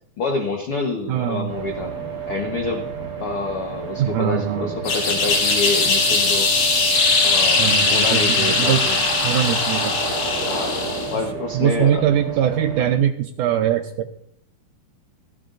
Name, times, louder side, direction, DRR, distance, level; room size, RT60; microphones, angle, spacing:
voice 1, 0.2-1.9 2.3-2.8 3.2-6.5 7.2-9.0 10.5-10.8 11.1-12.1, left 4 dB, 85° left, 2 dB, 1.2 m, -27 dB
voice 2, 1.1-1.5 4.0-4.7 7.6-8.8 9.2-9.9 11.5-14.1, right 10 dB, 75° right, 4 dB, 1.9 m, -22 dB
sound 1, 1.5-13.0, right 7 dB, 35° right, 4.0 m, -33 dB
sound 2, 4.8-11.2, left 3 dB, 65° left, 4.9 m, -20 dB
17.0 x 14.5 x 2.6 m, 0.69 s
omnidirectional pair, 4.4 m